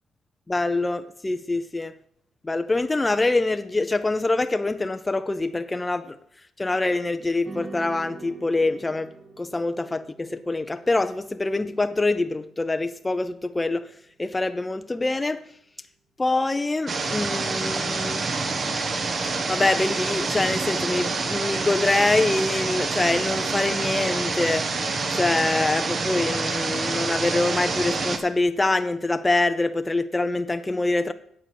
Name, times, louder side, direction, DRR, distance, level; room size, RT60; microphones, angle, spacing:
voice 1, 0.5-1.9 2.4-6.2 6.6-9.1 9.4-13.9 14.2-15.4 16.2-18.2 19.3-24.7 25.1-31.1, left 2 dB, 20° left, 0.5 m, -25 dB
sound 1, 7.4-16.0, right 3 dB, 25° right, 2.1 m, -47 dB
sound 2, 16.9-28.2, right 3 dB, 45° right, 1.3 m, -27 dB
9.3 x 7.5 x 6.2 m
cardioid pair, 90°, 0 cm